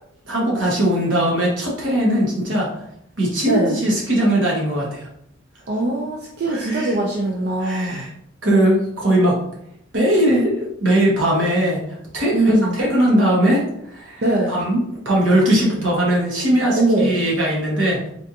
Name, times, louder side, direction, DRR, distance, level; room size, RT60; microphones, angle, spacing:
voice 1, 0.3-2.7 3.2-5.1 6.5-6.9 7.6-8.1 8.4-9.3 9.9-11.8 12.1-13.6 13.9-18.1, right 1 dB, 70° right, -4 dB, 1.2 m, -19 dB
voice 2, 3.4-3.8 5.7-8.0 12.3-12.8 14.2-14.6 16.8-17.1, right 2 dB, 55° right, -1 dB, 0.4 m, -21 dB
3.3 x 2.5 x 2.8 m, 0.75 s
head